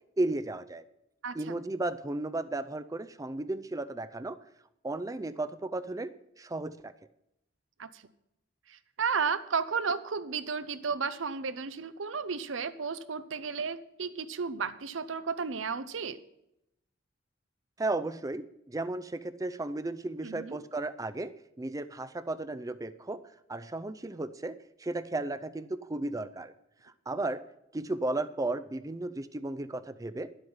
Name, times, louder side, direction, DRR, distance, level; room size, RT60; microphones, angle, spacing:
voice 1, 0.2-0.8 1.3-4.4 4.8-6.9 17.8-21.3 21.6-23.2 23.5-26.5 26.8-27.4 27.7-30.3, right 2 dB, 20° right, 12 dB, 0.5 m, -34 dB
voice 2, 1.2-1.6 7.8-8.0 8.7-16.2 20.2-20.6, right 5 dB, 70° right, 14 dB, 0.7 m, -33 dB
11.5 x 8.0 x 5.6 m, 0.83 s
head